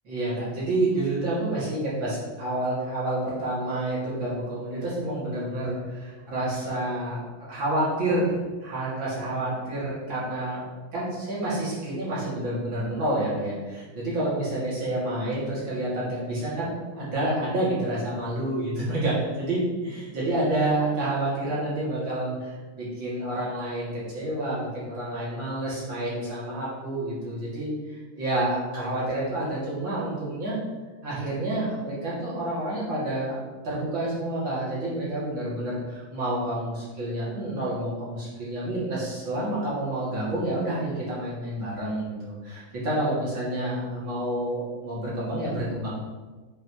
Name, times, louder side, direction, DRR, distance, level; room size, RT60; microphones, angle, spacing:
voice 1, 0.0-8.3 8.6-10.6 10.9-30.6 31.0-33.4 33.6-45.9, right 1 dB, 70° right, -9 dB, 3.4 m, -29 dB
8.4 x 6.1 x 3.1 m, 1.3 s
omnidirectional pair, 2.2 m